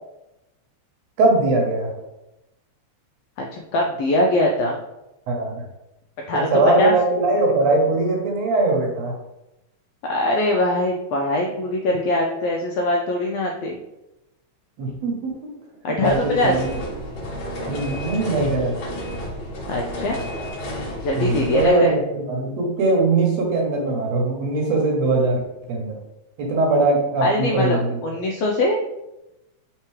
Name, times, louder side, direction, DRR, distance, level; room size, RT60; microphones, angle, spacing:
voice 1, 1.2-1.9 5.3-5.6 6.3-9.2 14.8-15.5 16.0-16.7 17.7-18.8 21.2-26.0 26.4-28.0, right 2 dB, 70° right, 0 dB, 1.9 m, -21 dB
voice 2, 3.5-4.8 6.3-6.5 6.8-6.9 10.1-13.8 15.8-16.5 19.7-20.2 21.0-21.9 27.2-28.8, left 1 dB, 85° left, 0 dB, 1.4 m, -22 dB
sound 1, 16.0-21.7, equal, 50° left, 1.6 m, -31 dB
4.4 x 3.7 x 3.2 m, 0.92 s
omnidirectional pair, 3.4 m